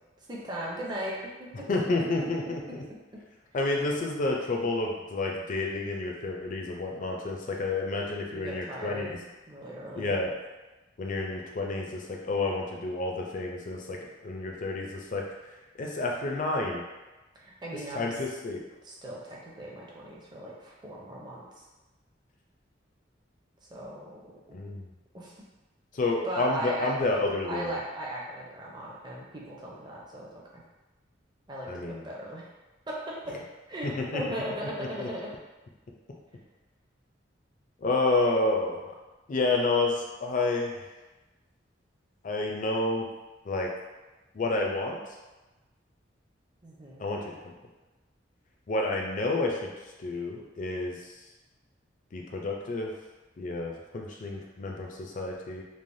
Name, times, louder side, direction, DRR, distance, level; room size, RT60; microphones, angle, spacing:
voice 1, 0.3-1.3 1.6-2.0 8.3-10.2 17.4-18.1 18.8-21.4 23.7-24.2 25.1-25.4 26.2-30.6 31.5-32.5 32.9-33.4 33.7-35.3 46.6-47.0, right 1 dB, 25° right, -4 dB, 0.5 m, -38 dB
voice 2, 1.7-2.8 3.5-9.2 10.0-10.3 11.0-14.0 14.2-15.2 15.8-16.8 17.9-18.6 24.5-24.9 25.9-27.8 31.7-32.1 33.3-33.4 33.8-34.2 34.8-35.1 37.8-38.9 39.3-40.9 42.2-43.1 43.4-43.7 44.3-45.0 47.0-47.5 48.7-49.7 50.0-51.0 52.1-52.9 53.4-55.6, left 2 dB, 45° left, 0 dB, 0.4 m, -30 dB
3.2 x 2.0 x 2.6 m, 1.1 s
head